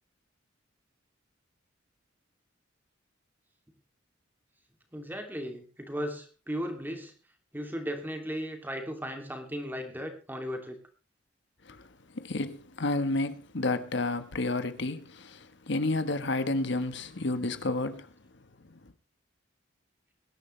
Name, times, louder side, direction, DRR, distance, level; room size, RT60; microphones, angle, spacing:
voice 1, 4.9-7.1 7.5-10.8, equal, 10° right, 2.7 m, -36 dB
voice 2, 12.1-18.1, left 2 dB, 65° left, 1.3 m, -31 dB
22.5 x 10.5 x 3.3 m
head